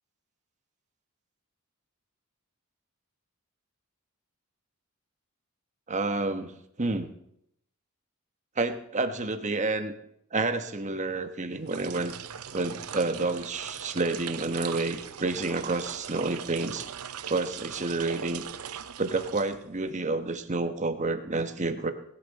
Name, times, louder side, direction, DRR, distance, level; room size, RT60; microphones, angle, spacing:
voice 1, 5.9-6.5 6.8-7.1 8.6-9.9 10.3-12.1 12.5-16.9 17.3-18.5 19.0-21.9, right 3 dB, 35° right, 8 dB, 1.2 m, -29 dB
sound 1, 11.5-20.0, right 8 dB, 75° right, 0.7 m, -40 dB
20.0 x 11.5 x 4.2 m, 0.73 s
head